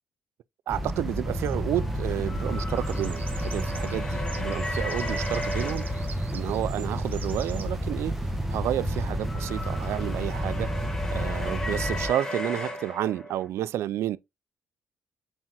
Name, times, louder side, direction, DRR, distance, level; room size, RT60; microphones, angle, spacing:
sound 1, 0.7-12.1, equal, 5° right, 1.1 m, -30 dB
voice 1, 0.7-5.8 6.3-8.1 8.5-10.7 11.1-14.2, right 12 dB, 75° right, 0.4 m, -30 dB
sound 2, 1.1-6.8 8.1-13.5, left 1 dB, 15° left, 1.6 m, -36 dB
sound 3, 2.8-7.7, right 6 dB, 40° right, 1.1 m, -45 dB
7.4 x 4.5 x 2.9 m
cardioid pair, 140°, 5 cm